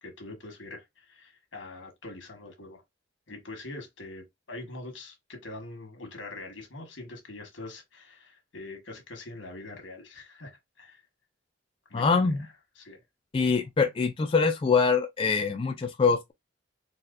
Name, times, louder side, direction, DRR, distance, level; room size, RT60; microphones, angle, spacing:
voice 1, 0.0-2.8 3.3-11.0 11.9-12.4 12.8-13.0, left 2 dB, 80° left, 1.3 m, -43 dB
voice 2, 11.9-12.5 13.3-16.3, left 5 dB, 30° left, 0.3 m, -24 dB
4.0 x 2.2 x 2.5 m
head